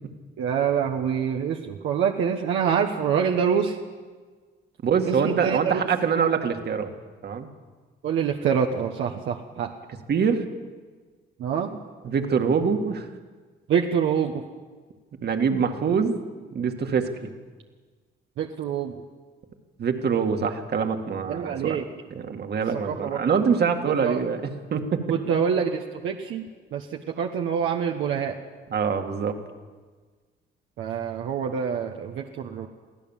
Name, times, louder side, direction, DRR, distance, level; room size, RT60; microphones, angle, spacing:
voice 1, 0.4-3.8 5.1-5.8 8.0-9.7 11.4-11.7 13.7-14.4 18.4-19.0 21.3-21.8 22.8-23.2 23.8-24.2 25.1-26.4 26.7-28.3 30.8-32.7, right 7 dB, 75° right, 2 dB, 1.3 m, -26 dB
voice 2, 4.8-6.9 7.2-7.5 10.1-10.4 12.0-13.1 15.2-16.2 16.5-17.3 19.8-21.8 22.1-24.4 24.7-25.0 28.7-29.4, right 6 dB, 55° right, 5 dB, 2.1 m, -24 dB
23.5 x 15.5 x 7.4 m, 1.4 s
cardioid pair, 90°, 20 cm